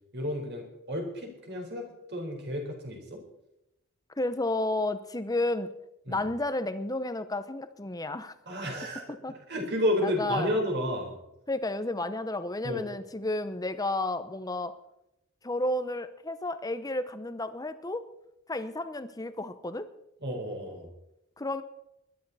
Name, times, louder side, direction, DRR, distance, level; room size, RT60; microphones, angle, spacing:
voice 1, 0.1-3.2 6.1-6.2 8.5-11.2 12.6-12.9 20.2-20.9, equal, 50° right, 1 dB, 4.2 m, -32 dB
voice 2, 4.2-5.7 6.1-8.3 9.2-9.3 10.0-10.5 11.5-14.7 15.4-18.0 18.5-19.9 21.4-21.6, left 2 dB, 15° left, 11 dB, 0.7 m, -31 dB
20.5 x 12.0 x 4.1 m, 0.85 s
head